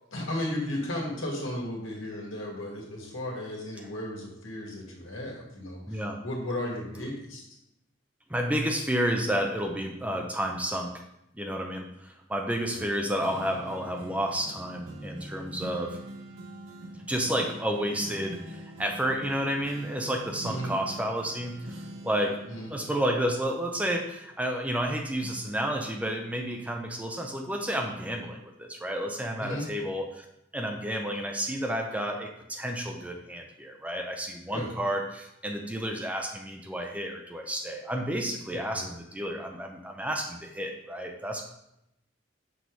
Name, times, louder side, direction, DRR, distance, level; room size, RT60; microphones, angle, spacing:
voice 1, 0.1-7.4 12.7-12.8 20.5-20.7 22.5-22.7 29.4-29.7 34.5-34.7 38.7-38.9, left 1 dB, 85° left, -2 dB, 1.8 m, -35 dB
voice 2, 5.9-6.2 8.3-11.0 11.4-16.0 17.1-22.4 22.7-30.2 30.5-41.4, equal, 5° right, 2 dB, 0.5 m, -31 dB
sound 1, 13.2-24.9 25.2-27.1 27.6-27.7, right 1 dB, 85° right, 1.0 m, -45 dB
6.1 x 5.2 x 3.1 m, 0.81 s
head